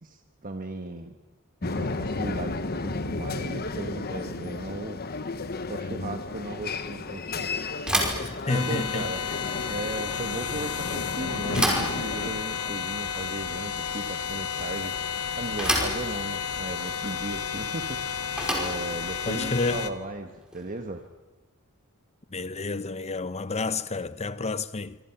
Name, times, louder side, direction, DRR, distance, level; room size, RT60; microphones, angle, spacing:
voice 1, 0.0-1.2 1.6-5.0 5.7-7.5 8.5-9.2 9.7-14.9 15.3-21.0, right 2 dB, 40° right, 1.4 m, -37 dB
sound 1, 1.6-12.9, left 3 dB, 45° left, 1.1 m, -33 dB
Bicycle / Thump thud, 7.8-20.9, equal, 5° right, 5.3 m, -33 dB
voice 2, 8.2-9.1 19.3-19.9 22.3-25.0, left 3 dB, 30° left, 0.9 m, -30 dB
sound 2, 8.5-19.9, left 7 dB, 80° left, 1.5 m, -32 dB
26.5 x 25.5 x 6.0 m
head